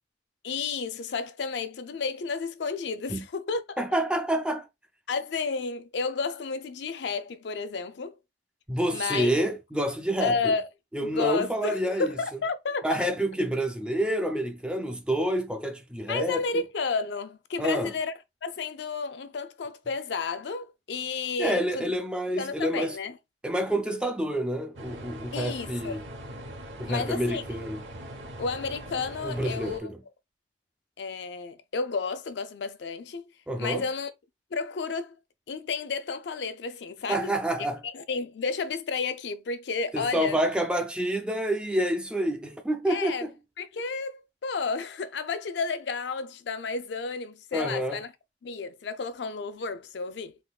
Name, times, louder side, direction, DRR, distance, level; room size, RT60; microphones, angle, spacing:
voice 1, 0.4-3.8 5.1-8.2 8.9-9.3 10.2-10.7 11.0-13.1 16.1-18.1 18.4-21.9 22.3-23.2 25.3-26.0 26.9-27.4 28.4-29.9 31.0-33.3 33.6-34.1 34.5-35.1 35.5-37.3 37.8-40.4 42.9-43.3 43.6-48.1 48.4-50.4, left 4 dB, 70° left, 0.4 m, -32 dB
voice 2, 3.8-4.7 8.7-10.5 10.9-12.2 12.8-16.4 17.6-17.9 21.4-23.0 23.4-26.0 26.8-27.8 29.2-30.0 33.5-33.8 37.1-37.8 39.9-43.3 47.5-48.0, equal, 5° right, 0.4 m, -28 dB
sound 1, 24.8-29.8, right 1 dB, 85° right, 1.0 m, -41 dB
3.6 x 2.9 x 2.3 m
head